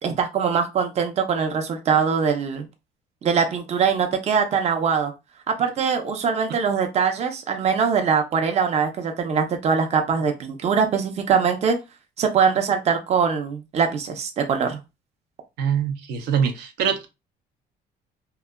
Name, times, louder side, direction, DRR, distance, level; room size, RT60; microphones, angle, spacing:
voice 1, 0.0-2.7 3.2-5.1 5.6-11.8 12.2-14.8, right 6 dB, 40° right, 0.5 m, -22 dB
voice 2, 15.6-17.1, right 7 dB, 85° right, 0.6 m, -23 dB
2.7 x 2.3 x 2.2 m
cardioid pair, 110°, 17 cm